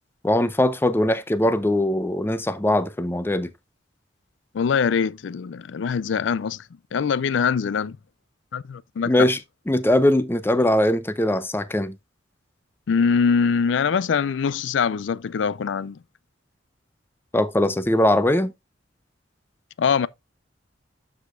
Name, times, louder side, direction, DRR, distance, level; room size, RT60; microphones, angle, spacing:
voice 1, 0.2-3.5 9.0-9.4 9.7-12.0 17.3-18.5, left 1 dB, 10° left, 0.5 m, -21 dB
voice 2, 4.5-6.6 6.9-8.0 8.5-9.3 12.9-16.0 19.8-20.1, left 6 dB, 70° left, 0.4 m, -23 dB
12.5 x 4.9 x 2.4 m
head